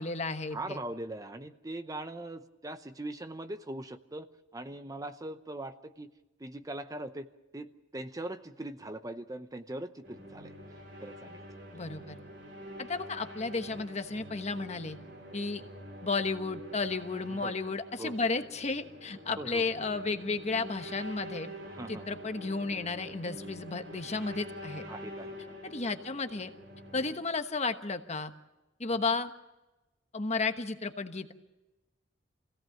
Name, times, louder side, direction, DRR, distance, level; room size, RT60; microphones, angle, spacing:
voice 1, 0.0-0.8 11.7-12.2 12.8-15.0 15.3-15.6 16.0-21.5 21.9-24.8 25.6-26.5 26.9-28.3 28.8-29.3 30.1-31.3, left 3 dB, 35° left, 8 dB, 1.2 m, -33 dB
voice 2, 0.5-4.3 4.5-6.1 6.4-7.3 7.5-10.6 11.0-11.5 15.6-15.7 17.3-18.2 19.4-19.7 21.7-22.2 24.9-25.6 28.9-29.0, right 1 dB, 20° right, 10 dB, 0.7 m, -41 dB
sound 1, 10.0-27.2, equal, 80° right, 5.6 m, -46 dB
26.0 x 17.0 x 7.2 m, 1.0 s
head